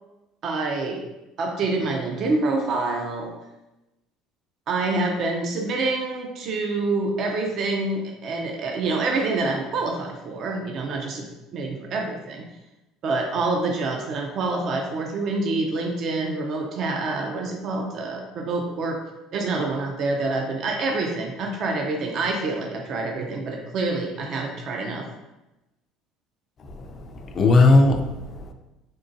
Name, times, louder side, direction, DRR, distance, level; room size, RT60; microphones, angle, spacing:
voice 1, 0.4-1.1 1.4-3.3 4.7-11.3 11.5-12.5 13.0-19.0 19.3-25.1, right 3 dB, 45° right, 2 dB, 0.4 m, -26 dB
voice 2, 26.6-28.5, left 3 dB, 30° left, 4 dB, 0.3 m, -19 dB
3.7 x 2.9 x 2.6 m, 0.99 s
cardioid pair, 145°, 0 cm